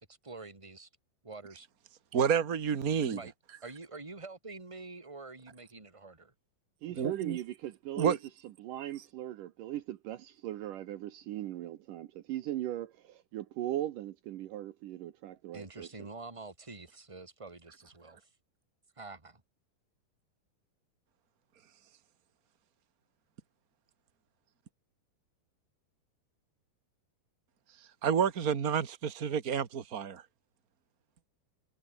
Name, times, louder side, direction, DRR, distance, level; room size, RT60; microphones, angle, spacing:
voice 1, 0.2-0.9 1.2-1.7 3.1-3.3 3.6-6.3 6.9-7.1 15.5-18.2 19.0-19.4, right 3 dB, 10° right, 2.4 m, -46 dB
voice 2, 2.1-3.2 7.0-7.4 8.0-8.2 28.0-30.2, right 7 dB, 85° right, 0.7 m, -29 dB
voice 3, 6.8-8.2 8.6-16.1, right 13 dB, 70° right, 2.3 m, -39 dB
omnidirectional pair, 4.4 m